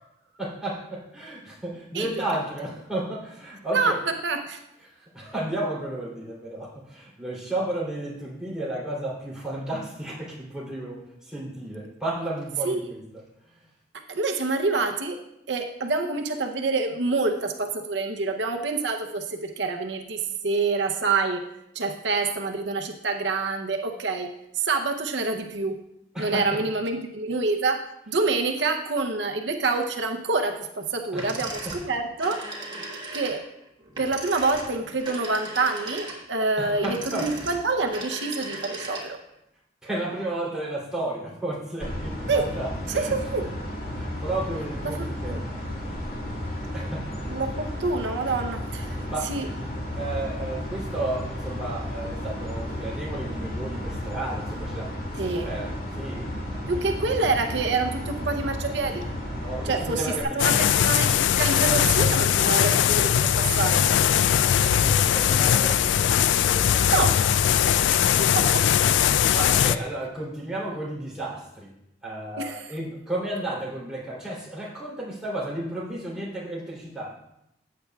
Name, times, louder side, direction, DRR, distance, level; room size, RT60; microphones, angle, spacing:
voice 1, 0.4-4.0 4.8-13.6 26.1-26.6 31.1-31.7 32.8-32.9 36.6-37.4 39.8-43.1 43.9-45.5 46.7-47.1 49.1-49.4 49.9-56.3 59.4-60.5 64.3-66.9 69.3-71.8 72.0-77.1, right 1 dB, 5° right, -7 dB, 3.1 m, -33 dB
voice 2, 3.7-4.6 12.6-12.8 14.1-15.2 15.5-21.4 21.7-25.8 26.2-32.4 33.1-33.4 34.0-39.2 42.3-42.4 42.9-43.5 44.9-45.4 47.3-48.9 49.3-49.5 55.2-55.5 56.7-59.0 59.6-60.1 60.3-63.8 66.9-67.5 68.2-68.7 72.4-72.7, right 3 dB, 80° right, 5 dB, 0.7 m, -27 dB
sound 1, 31.2-39.3, right 2 dB, 25° right, 1.5 m, -37 dB
sound 2, 41.8-60.2, left 1 dB, 50° left, 2.3 m, -33 dB
sound 3, 60.4-69.8, left 9 dB, 90° left, 0.3 m, -20 dB
14.5 x 8.5 x 2.4 m, 0.83 s
head